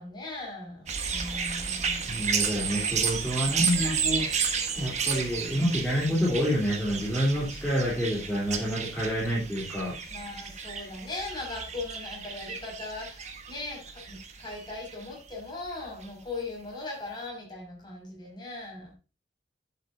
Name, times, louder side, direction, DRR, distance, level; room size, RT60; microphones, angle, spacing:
voice 1, 0.0-3.1 3.5-3.9 7.3-7.4 7.8-8.0 10.1-18.9, left 2 dB, 25° left, -2 dB, 5.9 m, -39 dB
sound 1, 0.9-15.3 16.0-16.1, right 6 dB, 40° right, 1.4 m, -32 dB
voice 2, 2.1-4.3 4.8-9.9, equal, 5° left, -8 dB, 3.7 m, -28 dB
11.0 x 8.6 x 2.7 m, 0.30 s
head